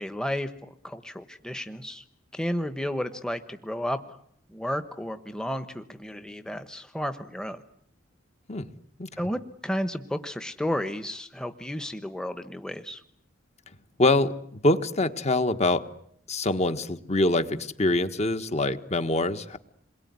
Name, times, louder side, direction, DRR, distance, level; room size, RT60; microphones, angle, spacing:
voice 1, 0.0-2.0 2.3-4.2 4.5-7.6 9.2-13.0, equal, 5° left, 9 dB, 1.1 m, -32 dB
voice 2, 14.0-14.3 14.6-15.9 16.3-19.6, left 2 dB, 35° left, 10 dB, 1.5 m, -24 dB
27.5 x 22.0 x 9.7 m, 0.68 s
head